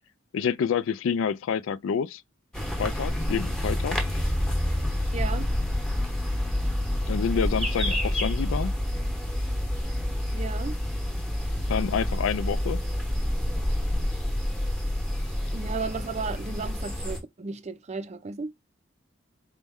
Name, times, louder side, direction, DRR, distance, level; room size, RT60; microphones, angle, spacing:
voice 1, 0.3-2.2 2.8-4.0 7.1-8.7 11.7-12.8, left 7 dB, 80° left, 0.3 m, -28 dB
sound 1, 2.5-17.2, left 1 dB, 5° left, 0.9 m, -28 dB
voice 2, 5.1-5.5 10.3-10.8 15.5-18.5, right 4 dB, 35° right, 0.4 m, -34 dB
4.1 x 2.1 x 3.5 m
head